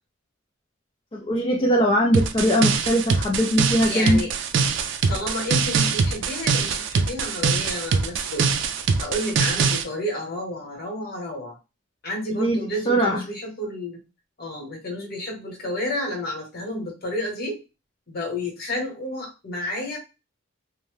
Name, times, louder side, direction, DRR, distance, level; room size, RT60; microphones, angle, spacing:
voice 1, 1.1-4.2 12.3-12.6 12.9-13.2, equal, 25° left, -2 dB, 0.4 m, -21 dB
sound 1, 2.1-9.8, right 5 dB, 60° right, 0.3 m, -23 dB
voice 2, 3.8-4.3 5.1-8.5 9.0-11.6 12.0-14.0 14.4-17.6 18.1-20.0, left 1 dB, 50° left, 0 dB, 1.1 m, -31 dB
2.7 x 2.1 x 3.2 m, 0.28 s
head